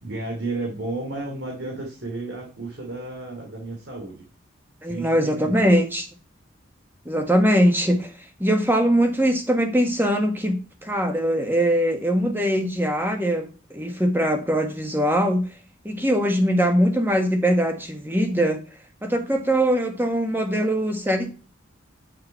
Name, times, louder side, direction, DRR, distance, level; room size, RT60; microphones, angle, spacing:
voice 1, 0.0-4.2 4.8-5.8, right 2 dB, 70° right, -1 dB, 2.8 m, -32 dB
voice 2, 4.8-6.0 7.0-8.1 8.4-10.6 10.8-13.5 13.7-15.4 15.8-18.6 19.0-21.3, equal, 10° right, 5 dB, 1.4 m, -21 dB
9.6 x 6.8 x 4.5 m, 0.35 s
head